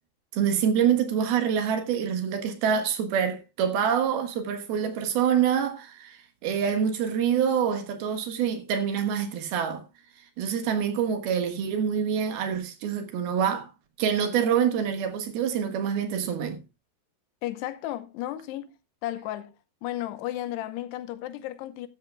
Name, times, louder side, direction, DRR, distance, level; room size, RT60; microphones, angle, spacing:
voice 1, 0.3-9.8 10.4-13.7 14.0-16.6, right 8 dB, 70° right, 3.2 m, -26 dB
voice 2, 17.4-18.7 19.0-19.5 19.8-21.9, left 14 dB, 80° left, 2.9 m, -33 dB
13.5 x 13.0 x 2.3 m
omnidirectional pair, 4.9 m